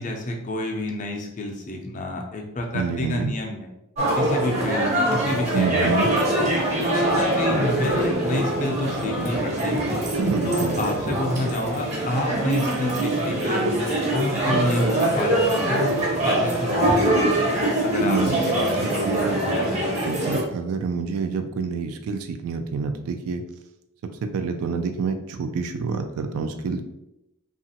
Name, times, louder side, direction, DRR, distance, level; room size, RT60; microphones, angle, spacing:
voice 1, 0.0-3.7 4.2-6.4 6.8-9.8 10.4-13.7 14.1-17.4 17.8-19.9, left 1 dB, 35° left, 2 dB, 0.4 m, -29 dB
voice 2, 2.7-3.3 5.5-6.1 10.2-10.8 18.0-18.4 19.1-19.4 20.0-23.4 24.3-26.8, right 5 dB, 80° right, 7 dB, 0.3 m, -27 dB
sound 1, 4.0-20.4, right 1 dB, 30° right, 0.6 m, -23 dB
2.9 x 2.4 x 2.8 m, 0.87 s
head